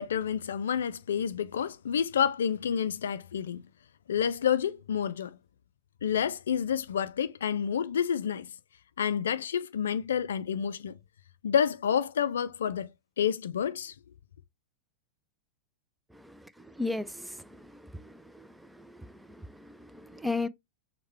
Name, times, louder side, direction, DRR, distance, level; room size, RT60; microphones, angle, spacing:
voice 1, 0.0-3.6 4.1-5.4 6.0-8.5 9.0-11.0 11.4-12.9 13.2-13.9, left 8 dB, 65° left, 0.3 m, -29 dB
voice 2, 16.8-17.4 17.9-18.2 18.8-20.5, left 3 dB, 5° right, 0.4 m, -35 dB
6.3 x 2.2 x 3.0 m
figure-of-eight pair, 90°, 0 cm